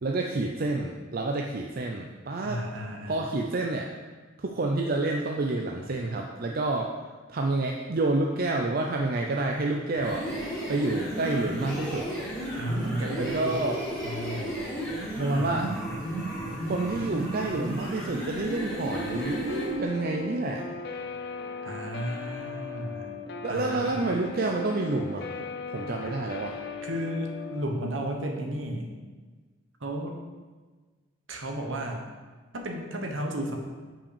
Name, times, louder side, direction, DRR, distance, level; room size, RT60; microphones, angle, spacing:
voice 1, 0.0-2.6 3.1-3.9 4.4-6.9 7.3-10.3 10.7-12.1 13.1-13.8 15.2-15.7 16.7-20.7 23.4-25.3 25.7-26.6, right 2 dB, 45° right, 1 dB, 0.5 m, -28 dB
voice 2, 2.4-3.2 12.5-13.5 14.0-14.6 15.3-15.8 21.6-23.1 23.5-24.1 26.8-28.9 29.8-30.1 31.3-32.0 32.5-33.6, right 1 dB, 70° right, 2 dB, 1.2 m, -33 dB
sound 1, 9.9-19.7, right 1 dB, 5° left, 2.5 m, -33 dB
Guitar, 18.9-27.6, left 4 dB, 55° left, 0.6 m, -38 dB
5.8 x 5.2 x 6.7 m, 1.4 s
head